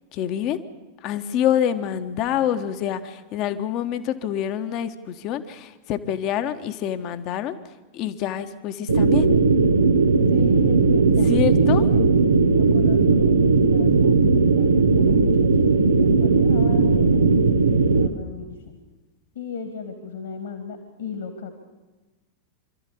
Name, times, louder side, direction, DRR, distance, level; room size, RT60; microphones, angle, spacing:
voice 1, 0.1-0.6 1.0-7.6 7.9-9.3 11.3-11.9, left 10 dB, 40° left, 9 dB, 1.4 m, -26 dB
sound 1, 8.9-18.1, right 4 dB, 75° right, 1.3 m, -17 dB
voice 2, 10.3-11.3 11.6-12.1 12.5-15.5 15.8-17.3 17.9-18.8 19.3-21.7, left 6 dB, 60° left, 6 dB, 2.5 m, -36 dB
26.5 x 13.5 x 8.6 m, 1.2 s
figure-of-eight pair, 90°, 0 cm